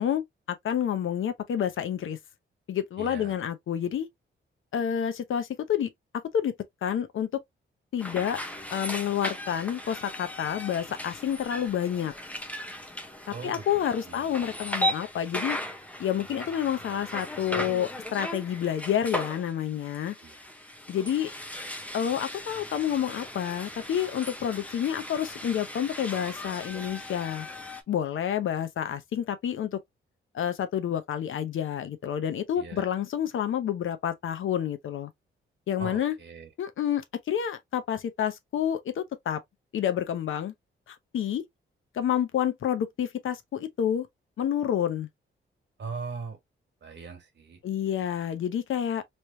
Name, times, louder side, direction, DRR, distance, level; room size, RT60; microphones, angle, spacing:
voice 1, 0.0-2.2 2.7-4.1 4.7-6.5 6.8-7.4 7.9-8.4 8.7-12.1 13.3-15.6 16.0-20.1 20.9-21.3 21.9-27.5 27.9-29.8 30.3-35.1 35.7-36.1 36.6-39.4 39.7-40.5 40.9-41.4 41.9-44.1 44.4-45.1 47.6-49.0, left 9 dB, 70° left, 0.8 m, -29 dB
voice 2, 3.0-3.4 13.3-13.7 14.0-14.3 20.2-20.5 32.6-32.9 35.8-36.5 45.8-46.4 46.8-47.6, right 5 dB, 60° right, 1.6 m, -40 dB
sound 1, 8.0-27.8, left 1 dB, 5° left, 0.8 m, -37 dB
3.2 x 3.2 x 2.6 m
cardioid pair, 105°, 21 cm